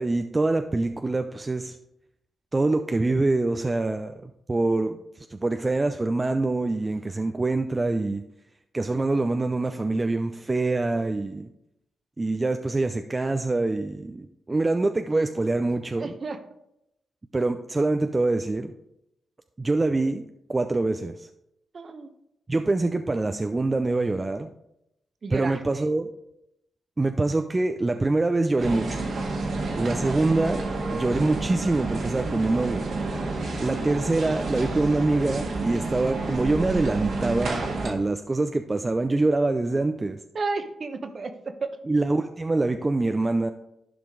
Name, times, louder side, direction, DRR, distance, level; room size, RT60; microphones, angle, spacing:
voice 1, 0.0-1.8 2.5-8.2 8.7-11.5 12.2-16.1 17.3-18.7 19.6-20.2 20.5-21.3 22.5-24.5 25.3-26.1 27.0-29.1 29.8-30.6 30.9-32.9 33.6-40.2 41.9-43.5, right 2 dB, 30° right, 7 dB, 0.5 m, -25 dB
voice 2, 16.0-16.4 21.7-22.1 25.2-25.9 40.3-41.7, right 3 dB, 50° right, 8 dB, 1.0 m, -32 dB
sound 1, 28.6-37.9, right 3 dB, 75° right, 1.6 m, -30 dB
11.0 x 5.0 x 3.8 m, 0.83 s
cardioid pair, 60°, 0 cm